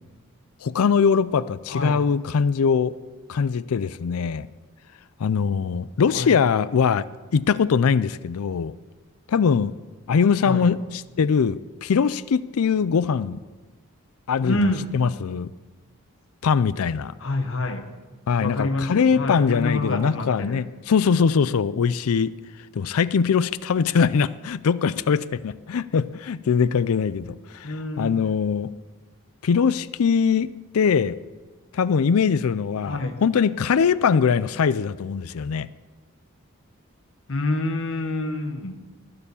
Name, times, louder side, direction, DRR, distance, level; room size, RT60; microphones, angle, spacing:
voice 1, 0.6-2.9 3.3-4.5 5.2-7.0 7.3-8.7 9.3-9.7 10.1-13.4 14.3-14.6 14.9-15.5 16.4-17.1 18.3-22.3 22.7-28.7 29.4-31.2 31.7-35.7, left 6 dB, 75° left, 17 dB, 0.4 m, -22 dB
voice 2, 1.7-2.0 6.1-6.4 10.4-10.7 14.4-14.9 17.2-17.9 18.4-20.6 27.6-28.2 32.8-33.2 37.3-38.8, left 2 dB, 60° left, 8 dB, 1.1 m, -27 dB
19.0 x 6.9 x 7.0 m, 1.3 s
head